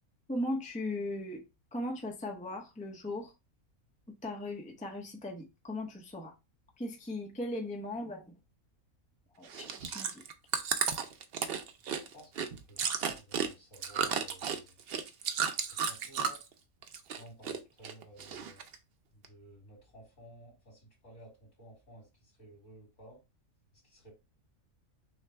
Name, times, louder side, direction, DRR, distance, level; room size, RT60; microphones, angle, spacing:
voice 1, 0.3-3.3 4.1-6.4 6.8-8.4 9.4-10.3, left 1 dB, 5° left, 0.6 m, -38 dB
Chewing mastication, 9.5-16.5 16.8-17.6 17.8-18.8 19.2-19.3, right 7 dB, 60° right, 0.7 m, -33 dB
voice 2, 12.1-14.8 15.8-16.4 17.1-18.7 19.1-23.2 23.8-24.1, right 1 dB, 65° left, 2.9 m, -55 dB
6.3 x 2.2 x 3.3 m
omnidirectional pair, 1.5 m